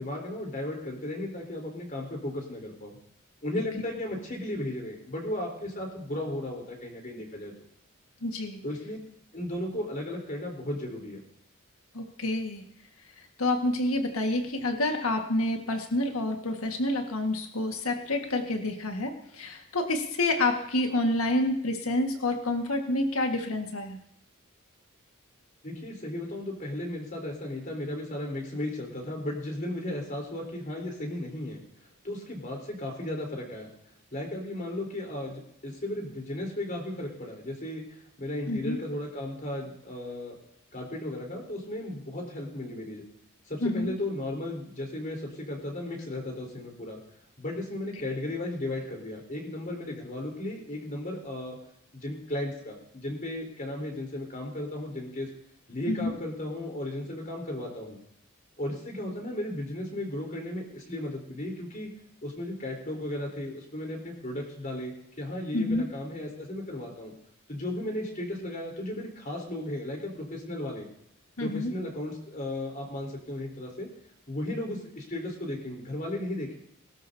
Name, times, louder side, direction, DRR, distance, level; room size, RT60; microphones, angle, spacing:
voice 1, 0.0-3.0 3.4-7.5 8.6-9.0 9.3-11.2 25.6-31.6 32.0-33.7 34.1-40.3 40.7-43.0 43.5-47.0 47.4-51.6 51.9-55.3 55.7-58.0 58.6-61.9 62.2-67.1 67.5-70.9 71.4-73.9 74.3-76.6, left 1 dB, 40° left, 0 dB, 3.9 m, -35 dB
voice 2, 8.2-8.6 11.9-12.6 13.4-24.0 38.5-38.8 43.6-43.9 55.9-56.1 65.5-65.8 71.4-71.7, left 2 dB, 85° left, 4 dB, 1.7 m, -28 dB
21.5 x 12.5 x 2.8 m, 0.74 s
head